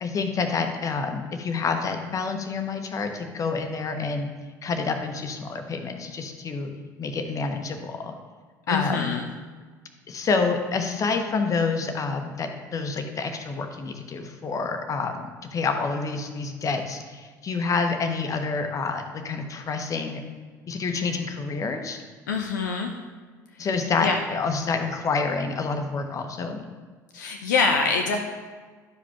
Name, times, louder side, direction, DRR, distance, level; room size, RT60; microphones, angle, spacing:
voice 1, 0.0-4.3 4.6-6.7 7.0-8.1 8.7-9.2 10.1-20.2 20.7-22.0 23.6-26.6, left 4 dB, 35° left, 6 dB, 1.0 m, -28 dB
voice 2, 8.7-9.2 22.3-22.9 23.6-23.7 24.0-24.2 27.1-28.2, left 4 dB, 75° left, 3 dB, 0.6 m, -25 dB
11.5 x 4.9 x 3.5 m, 1.4 s
figure-of-eight pair, 60°, 10 cm